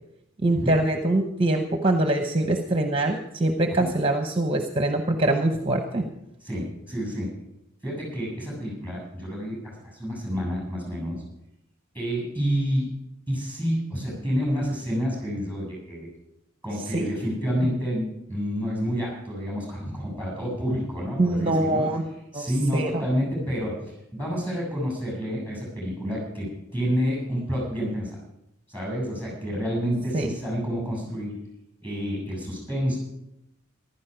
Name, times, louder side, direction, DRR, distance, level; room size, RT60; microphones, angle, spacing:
voice 1, 0.4-6.1 16.9-17.1 21.2-22.0 22.3-22.4 22.7-22.9 30.1-30.3, right 1 dB, 25° right, 4 dB, 0.9 m, -23 dB
voice 2, 6.4-7.3 7.8-11.2 11.9-12.9 13.3-16.1 16.6-21.9 22.3-28.2 28.7-31.3 31.8-33.0, equal, 10° left, -3 dB, 6.9 m, -29 dB
15.0 x 12.0 x 5.0 m, 0.85 s
head